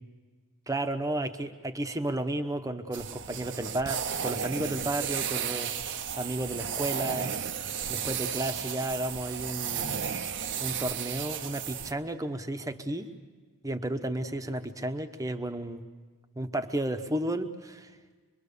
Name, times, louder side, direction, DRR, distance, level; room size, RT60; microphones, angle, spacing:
voice 1, 0.7-5.7 6.1-7.3 7.9-10.0 10.6-13.1 13.6-15.8 16.4-17.9, right 1 dB, 15° right, 7 dB, 1.0 m, -32 dB
sound 1, 2.9-11.9, right 8 dB, 55° right, 0.8 m, -34 dB
26.0 x 23.0 x 6.9 m, 1.4 s
head